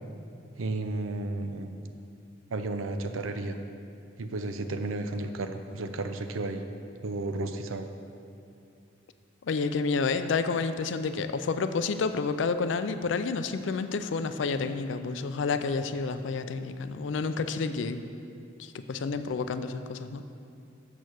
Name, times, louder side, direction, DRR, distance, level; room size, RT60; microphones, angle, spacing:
voice 1, 0.6-1.8 2.5-3.6 4.2-6.6 7.0-7.9, right 2 dB, 90° right, 7 dB, 0.6 m, -33 dB
voice 2, 9.4-18.0 18.6-20.2, left 4 dB, 65° left, 10 dB, 0.4 m, -30 dB
6.8 x 6.4 x 6.2 m, 2.5 s
head